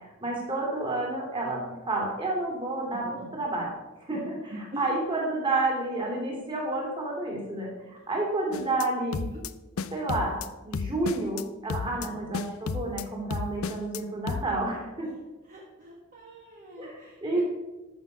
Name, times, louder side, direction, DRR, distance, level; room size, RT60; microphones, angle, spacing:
voice 1, 0.2-3.7 4.1-4.3 4.8-9.3 9.9-10.4 10.6-15.1 16.8-16.9 17.2-17.4, right 2 dB, 25° right, -2 dB, 3.0 m, -30 dB
voice 2, 4.1-4.9 8.5-8.7 9.3-9.4 11.9-12.1 15.0-15.1 15.4-17.4, equal, 40° right, -4 dB, 1.6 m, -44 dB
sound 1, 8.5-8.9 9.1-9.5 9.8-10.5 10.7-11.4 11.7-12.1 12.3-13.0 13.3-14.0 14.3-14.4, left 5 dB, 70° left, 0.5 m, -32 dB
13.0 x 6.0 x 5.4 m, 1.1 s
head